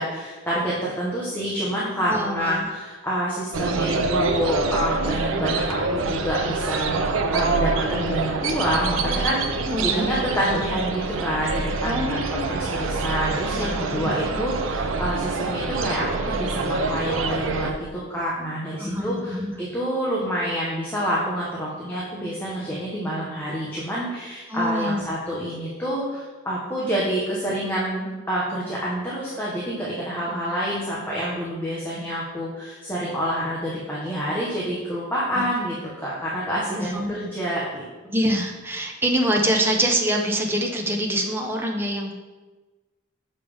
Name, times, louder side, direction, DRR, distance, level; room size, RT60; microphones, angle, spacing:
voice 1, 0.0-12.2 12.5-35.8 36.0-37.8, equal, 10° left, -6 dB, 1.0 m, -27 dB
voice 2, 2.1-2.7 9.6-10.1 11.8-12.6 13.5-14.4 18.8-19.5 24.5-25.1 35.3-35.4 36.8-37.1 38.1-42.2, equal, 10° right, 1 dB, 0.7 m, -25 dB
sound 1, 3.5-17.7, right 3 dB, 70° right, 0.5 m, -26 dB
6.6 x 5.3 x 3.4 m, 1.2 s
head